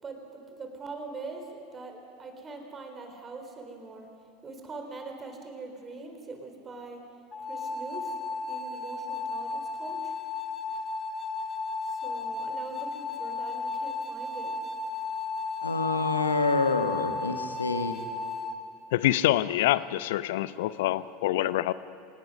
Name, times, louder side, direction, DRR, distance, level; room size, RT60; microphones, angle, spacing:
voice 1, 0.0-4.1 4.4-7.0 7.5-8.2 8.5-10.1 11.8-14.6, right 3 dB, 25° right, 4 dB, 3.7 m, -42 dB
sound 1, 7.3-18.5, left 4 dB, 20° left, 1.9 m, -34 dB
voice 2, 15.6-18.0, left 3 dB, 85° left, 7 dB, 1.4 m, -27 dB
voice 3, 18.9-21.7, left 15 dB, 60° left, 16 dB, 0.6 m, -26 dB
26.0 x 18.5 x 5.4 m, 2.6 s
figure-of-eight pair, 80°, 0 cm